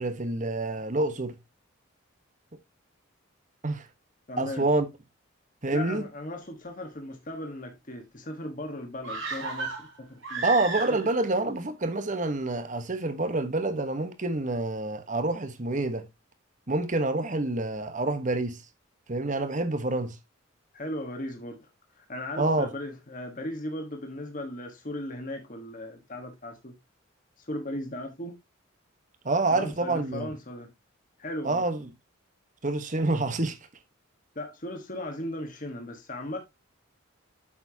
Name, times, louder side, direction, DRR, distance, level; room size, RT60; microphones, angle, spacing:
voice 1, 0.0-1.4 3.6-3.9 4.4-4.9 5.6-6.0 10.4-16.1 16.7-18.6 19.1-20.2 22.4-22.7 29.2-30.3 31.4-31.9 32.6-33.6, right 2 dB, 40° right, 1.1 m, -27 dB
voice 2, 4.3-4.7 5.7-10.4 10.9-11.1 20.7-26.8 27.4-28.4 29.5-30.7 31.2-31.7 34.3-36.4, left 1 dB, 40° left, 1.4 m, -37 dB
sound 1, 9.0-11.3 11.6-11.7, right 3 dB, 60° right, 3.3 m, -34 dB
8.6 x 7.0 x 2.8 m
head